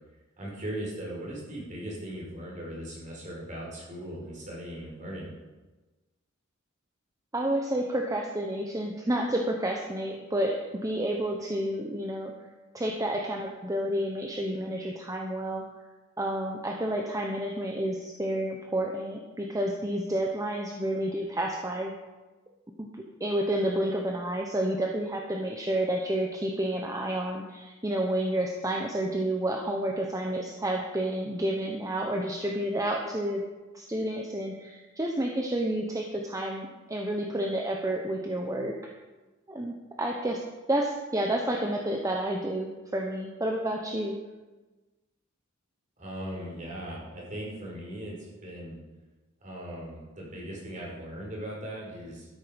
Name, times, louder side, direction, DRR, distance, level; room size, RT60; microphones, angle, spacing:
voice 1, 0.4-5.3 46.0-48.8 49.4-52.3, right 1 dB, 40° right, -3 dB, 5.0 m, -38 dB
voice 2, 7.3-12.3 12.7-15.6 16.2-21.9 22.8-33.4 33.7-38.7 39.5-40.4 40.7-44.2, right 1 dB, 15° right, 1 dB, 1.0 m, -30 dB
12.5 x 10.5 x 5.2 m, 1.2 s
head